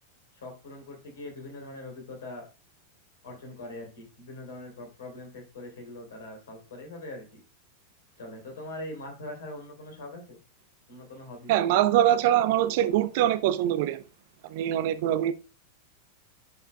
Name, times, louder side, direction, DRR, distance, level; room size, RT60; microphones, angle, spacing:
voice 1, 0.3-2.5 3.2-7.4 8.2-10.4 10.9-11.5, left 1 dB, 60° left, 3.3 m, -42 dB
voice 2, 11.5-14.0 14.5-15.3, right 12 dB, 50° right, 0.5 m, -23 dB
10.5 x 5.6 x 2.2 m
figure-of-eight pair, 90°, 0 cm